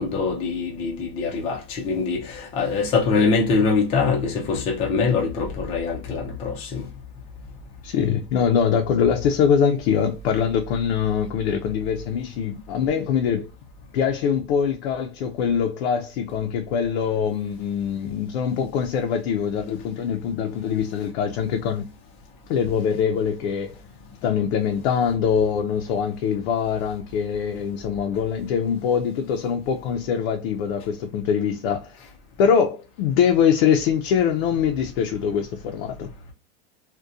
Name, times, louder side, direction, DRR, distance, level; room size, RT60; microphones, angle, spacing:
voice 1, 0.0-6.8, left 4 dB, 20° left, 0.4 m, -23 dB
voice 2, 7.8-13.5 13.9-21.9 22.5-23.8 24.2-32.0 32.4-36.1, left 7 dB, 70° left, 0.5 m, -23 dB
2.7 x 2.1 x 2.3 m
supercardioid pair, 160°, 32 cm